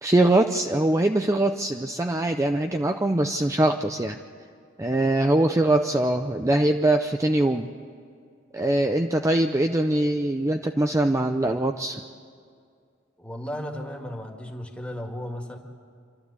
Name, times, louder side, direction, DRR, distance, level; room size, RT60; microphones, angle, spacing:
voice 1, 0.0-4.2 4.8-7.7 8.5-12.0, right 1 dB, 15° right, 5 dB, 0.5 m, -22 dB
voice 2, 13.2-15.6, equal, 5° left, 1 dB, 1.9 m, -35 dB
27.5 x 12.5 x 8.3 m, 2.2 s
head